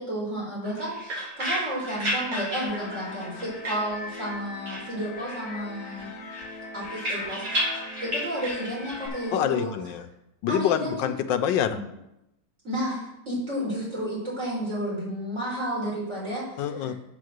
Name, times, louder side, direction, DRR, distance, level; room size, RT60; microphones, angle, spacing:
voice 1, 0.0-6.1 6.7-7.4 8.0-9.7 10.5-11.1 11.7-11.8 12.6-16.9, equal, 40° right, -7 dB, 5.5 m, -32 dB
sound 1, 0.6-4.4 4.7-5.5 5.8-9.1, equal, 85° right, 4.4 m, -32 dB
sound 2, 2.7-9.4, left 3 dB, 60° left, 1.5 m, -41 dB
voice 2, 9.3-10.1 10.4-11.8 16.6-16.9, left 9 dB, 85° left, 8 dB, 1.4 m, -26 dB
8.4 x 7.5 x 6.5 m, 0.87 s
omnidirectional pair, 2.0 m